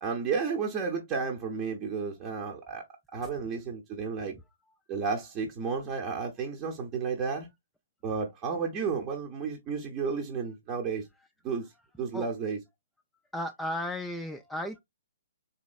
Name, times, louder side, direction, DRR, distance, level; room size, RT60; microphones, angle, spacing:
voice 1, 0.0-2.8 3.1-4.3 4.9-7.5 8.0-11.1 11.4-11.7 12.0-12.6, right 5 dB, 25° right, 0.7 m, -32 dB
voice 2, 13.3-14.8, left 1 dB, 5° left, 0.3 m, -34 dB
4.0 x 3.0 x 2.4 m
figure-of-eight pair, 125°, 0 cm